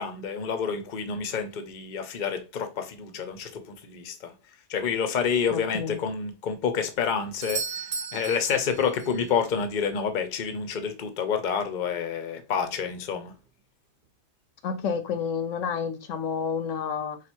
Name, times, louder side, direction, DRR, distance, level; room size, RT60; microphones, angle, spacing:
voice 1, 0.0-4.3 4.7-13.3, left 6 dB, 45° left, 0.7 m, -28 dB
voice 2, 5.5-6.0 14.6-17.2, left 6 dB, 75° left, 1.0 m, -30 dB
Doorbell, 7.4-9.3 13.3-13.4, right 6 dB, 50° right, 0.8 m, -35 dB
4.1 x 2.5 x 4.4 m
omnidirectional pair, 1.4 m